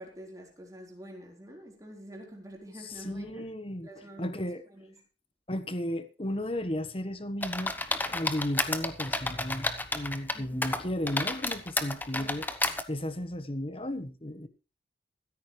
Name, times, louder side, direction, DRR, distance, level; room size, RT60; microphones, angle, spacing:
voice 1, 0.0-3.5 3.8-5.0 10.3-10.7 12.1-12.4, right 1 dB, 20° right, 4.3 m, -47 dB
voice 2, 2.8-3.9 4.2-4.6 5.5-7.7 8.0-12.5 12.9-14.5, left 1 dB, 30° left, 1.2 m, -34 dB
sound 1, 7.4-10.4 10.6-12.8, left 2 dB, 10° left, 1.0 m, -31 dB
15.0 x 13.5 x 3.3 m
head